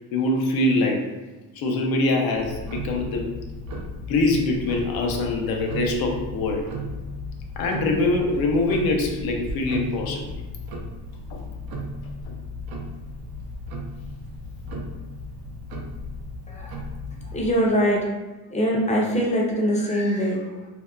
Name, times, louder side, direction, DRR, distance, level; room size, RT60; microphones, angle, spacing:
voice 1, 0.1-1.1 1.5-3.3 3.9-6.7 7.6-10.3 11.3-11.5 12.3-12.4, left 2 dB, 65° left, 1 dB, 0.6 m, -24 dB
Tick-tock, 2.3-17.6, left 1 dB, 65° right, 0.6 m, -35 dB
voice 2, 16.5-16.8 17.2-18.1 18.5-20.7, equal, 20° left, -2 dB, 0.5 m, -23 dB
2.6 x 2.1 x 2.3 m, 1.2 s
cardioid pair, 95°, 39 cm